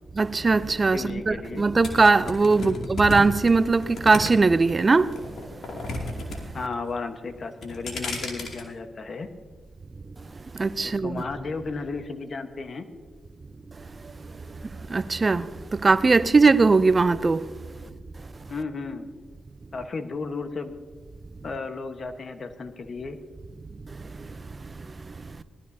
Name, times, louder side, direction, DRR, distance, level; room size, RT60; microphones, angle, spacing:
voice 1, 0.2-5.1 10.6-11.2 14.9-15.5 15.8-17.4, right 3 dB, 40° right, 0.5 m, -20 dB
voice 2, 0.9-1.7 2.5-2.9 6.5-9.3 10.8-12.9 18.5-19.1 19.7-20.7 21.4-23.2, left 4 dB, 55° left, 1.2 m, -34 dB
sound 1, 1.8-4.7 5.1-6.4 6.6-7.1 7.5-8.6, left 2 dB, 75° left, 2.5 m, -33 dB
19.5 x 13.0 x 2.8 m
cardioid pair, 60°, 0 cm